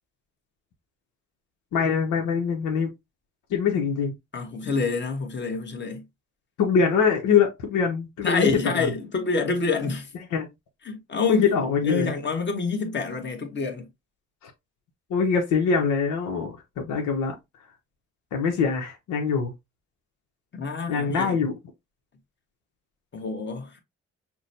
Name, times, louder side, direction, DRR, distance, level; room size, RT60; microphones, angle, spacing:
voice 1, 1.7-2.9 3.5-4.1 6.6-8.9 10.3-10.5 11.3-12.1 14.4-14.5 15.1-17.3 18.3-19.5 20.9-21.5, left 6 dB, 85° left, 1.0 m, -23 dB
voice 2, 4.3-6.0 8.2-10.1 10.9-11.4 11.8-13.9 20.5-21.4 23.1-23.8, left 4 dB, 40° left, 1.2 m, -27 dB
5.9 x 2.2 x 2.7 m
cardioid pair, 90°, 30 cm